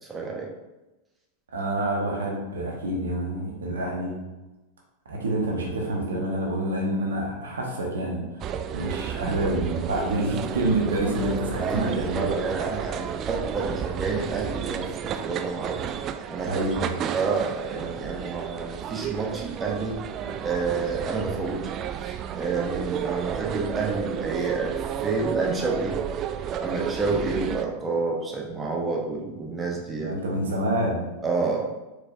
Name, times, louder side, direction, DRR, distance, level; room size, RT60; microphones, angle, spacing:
voice 1, 0.1-0.5 11.6-15.8 16.3-16.6 17.1-20.0 20.4-21.6 22.0-24.7 25.0-26.0 26.6-30.1 31.2-31.6, right 4 dB, 15° right, -1 dB, 0.9 m, -29 dB
voice 2, 1.5-4.1 5.1-8.5 8.7-12.3 16.5-17.0 30.0-31.0, right 1 dB, 80° right, -1 dB, 1.0 m, -27 dB
sound 1, 8.4-27.7, right 8 dB, 40° right, 0.3 m, -32 dB
4.6 x 4.3 x 2.5 m, 1.1 s
hypercardioid pair, 90°, 0 cm